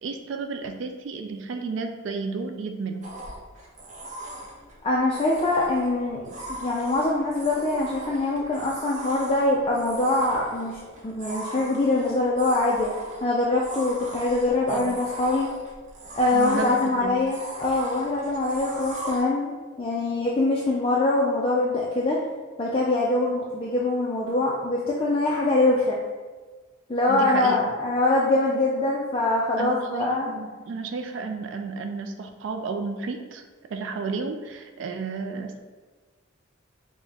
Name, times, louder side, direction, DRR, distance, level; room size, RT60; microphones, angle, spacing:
voice 1, 0.0-3.1 14.7-15.0 16.3-17.1 27.1-27.6 29.6-33.4 33.7-35.6, right 4 dB, 60° right, 5 dB, 0.3 m, -32 dB
sound 1, 3.0-19.2, right 1 dB, 35° right, 0.7 m, -39 dB
voice 2, 4.8-12.9 13.2-15.5 16.2-22.2 22.6-26.0 26.9-30.3, left 2 dB, 25° left, -3 dB, 0.3 m, -24 dB
5.0 x 2.1 x 3.4 m, 1.4 s
head